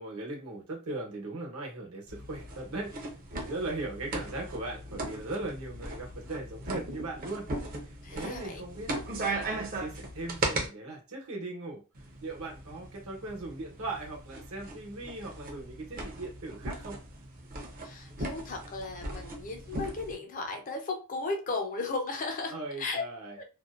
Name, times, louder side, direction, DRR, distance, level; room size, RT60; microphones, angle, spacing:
voice 1, 0.0-7.5 7.8-8.9 9.3-17.0 22.5-23.3, right 2 dB, 70° right, 1.0 m, -39 dB
sound 1, 2.1-10.7 11.9-20.1, right 2 dB, 40° right, 0.6 m, -38 dB
voice 2, 8.0-8.6 17.8-23.0 23.4-23.5, left 3 dB, 35° left, 0.4 m, -35 dB
2.5 x 2.1 x 2.4 m
head